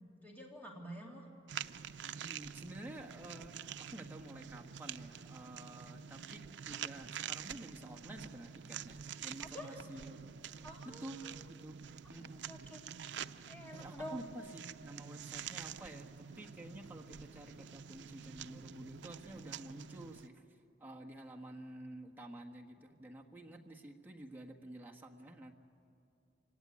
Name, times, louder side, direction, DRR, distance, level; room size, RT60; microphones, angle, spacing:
voice 1, 0.2-1.3 9.4-9.8 10.6-11.3 12.5-12.8 13.5-14.2, equal, 10° left, 0 dB, 2.4 m, -48 dB
sound 1, 1.5-20.3, right 8 dB, 75° right, 0.5 m, -47 dB
voice 2, 2.2-10.3 10.8-11.2 11.5-11.8 12.1-12.4 13.7-20.4 20.8-25.5, right 1 dB, 10° right, 0 dB, 1.4 m, -50 dB
27.0 x 17.0 x 9.6 m, 2.6 s
head